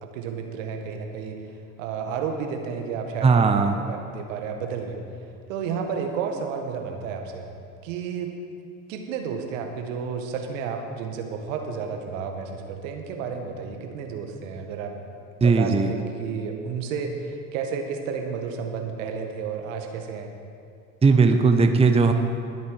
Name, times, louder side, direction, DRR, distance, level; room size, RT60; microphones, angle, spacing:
voice 1, 0.0-1.5 1.8-5.0 5.5-7.5 7.8-8.3 8.9-14.9 15.4-20.3, right 6 dB, 70° right, 4 dB, 1.8 m, -31 dB
voice 2, 3.2-3.7 15.4-15.9 21.0-22.1, right 4 dB, 15° right, 6 dB, 0.9 m, -18 dB
20.0 x 8.3 x 4.9 m, 2.4 s
hypercardioid pair, 80°, 40 cm